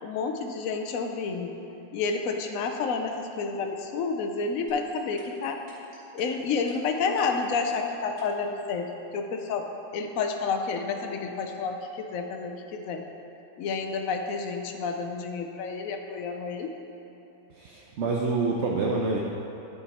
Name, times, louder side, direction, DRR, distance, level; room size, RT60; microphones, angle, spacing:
voice 1, 0.0-1.5 1.9-5.6 6.1-9.7 9.9-13.0 13.6-16.7, left 4 dB, 70° left, 4 dB, 1.0 m, -30 dB
sound 1, 4.7-8.5, equal, 30° right, 1.9 m, -52 dB
voice 2, 17.5-19.2, right 3 dB, 60° right, -1 dB, 0.7 m, -27 dB
10.5 x 4.7 x 4.2 m, 2.9 s
omnidirectional pair, 1.6 m